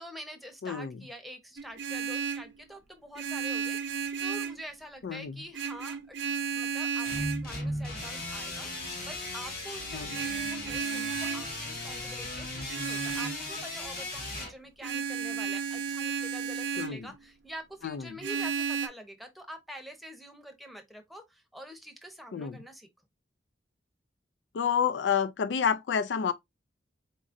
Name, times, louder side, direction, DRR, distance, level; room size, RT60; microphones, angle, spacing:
voice 1, 0.0-6.2 6.5-22.9, equal, ahead, 0.8 m, -46 dB
Vehicle horn car horn honking, 1.6-2.5 3.2-4.6 5.5-7.5 10.1-11.5 12.7-13.4 14.8-17.0 18.2-18.9, right 6 dB, 80° right, 0.7 m, -33 dB
voice 2, 5.0-5.3 9.9-10.1 16.8-17.1 17.8-18.0 22.3-22.6 24.5-26.3, left 7 dB, 80° left, 0.4 m, -29 dB
sound 1, 7.0-14.5, left 1 dB, 60° left, 2.0 m, -37 dB
4.0 x 3.8 x 2.5 m
head